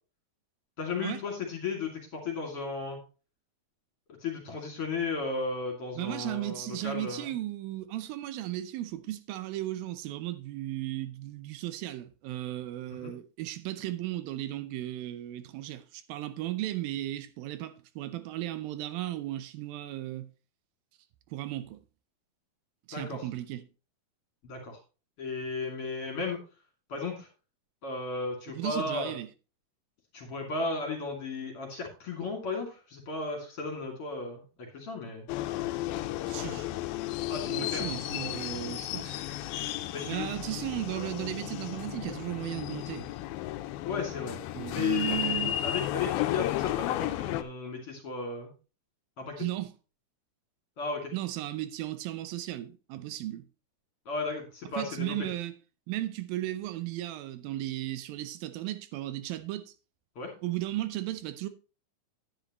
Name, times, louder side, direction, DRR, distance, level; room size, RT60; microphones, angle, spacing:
voice 1, 0.8-3.0 4.2-7.3 12.9-13.1 22.9-23.3 24.4-24.8 25.2-26.4 26.9-27.3 27.8-29.2 30.1-35.3 37.3-37.9 39.9-40.3 43.8-44.4 44.7-48.5 49.2-49.5 50.8-51.1 54.1-55.2 60.2-60.3, left 4 dB, 40° left, 3.2 m, -35 dB
voice 2, 6.0-20.3 21.3-21.8 22.9-23.7 28.5-29.3 36.3-36.7 37.5-39.3 40.1-43.1 44.5-45.6 49.4-49.7 51.1-53.5 54.8-55.6 55.9-59.7 60.4-61.5, right 14 dB, 80° right, 2.5 m, -35 dB
sound 1, 35.3-47.4, left 13 dB, 90° left, 2.5 m, -33 dB
10.5 x 10.0 x 3.0 m
omnidirectional pair, 4.2 m